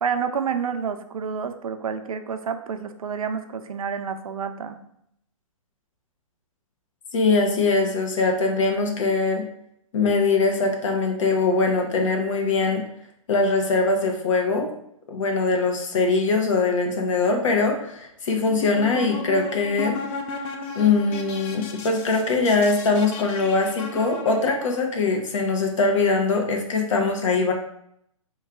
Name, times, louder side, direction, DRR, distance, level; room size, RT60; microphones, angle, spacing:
voice 1, 0.0-4.8, right 6 dB, 80° right, 8 dB, 0.6 m, -29 dB
voice 2, 7.1-9.5 9.9-12.8 13.3-14.7 15.1-20.0 20.7-27.5, left 3 dB, 60° left, 2 dB, 1.1 m, -22 dB
sound 1, 18.5-24.8, left 4 dB, 20° left, 0.4 m, -35 dB
4.6 x 3.1 x 3.7 m, 0.73 s
hypercardioid pair, 145°, 18 cm